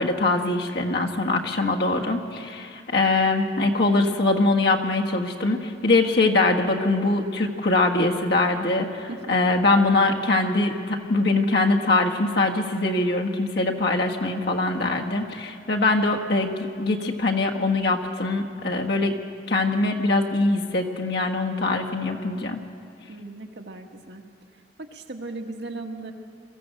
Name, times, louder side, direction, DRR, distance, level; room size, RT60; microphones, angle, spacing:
voice 1, 0.0-19.2 19.5-22.6, left 2 dB, 65° left, 1 dB, 1.6 m, -23 dB
voice 2, 23.1-24.2 24.8-26.1, right 2 dB, 65° right, 3 dB, 1.6 m, -37 dB
22.5 x 14.5 x 7.7 m, 2.5 s
head